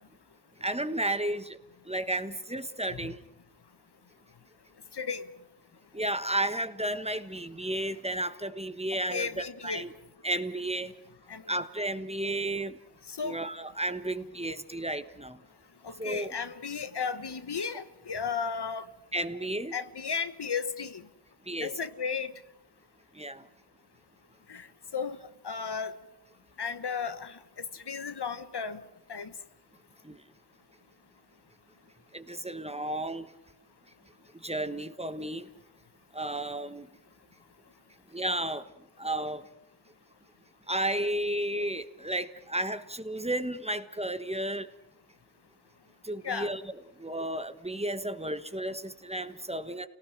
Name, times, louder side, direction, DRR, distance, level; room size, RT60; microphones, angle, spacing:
voice 1, 0.6-1.6 1.8-3.2 5.9-9.9 10.2-10.9 11.5-12.8 13.2-15.4 16.0-16.3 19.1-19.8 21.5-21.8 23.1-23.5 30.0-30.2 32.1-33.3 34.4-35.5 36.1-36.9 38.1-38.7 39.0-39.5 40.7-44.7 46.0-46.6 47.0-49.9, right 1 dB, 15° right, 1.3 m, -33 dB
voice 2, 4.9-5.3 9.1-9.8 11.3-11.5 13.1-13.4 15.8-18.8 19.7-21.0 21.6-22.3 24.5-24.7 24.9-25.2 25.4-26.0 26.6-28.8 29.1-29.3 46.2-46.5, left 6 dB, 70° left, 1.3 m, -34 dB
30.0 x 18.5 x 6.1 m
wide cardioid pair, 55°, 41 cm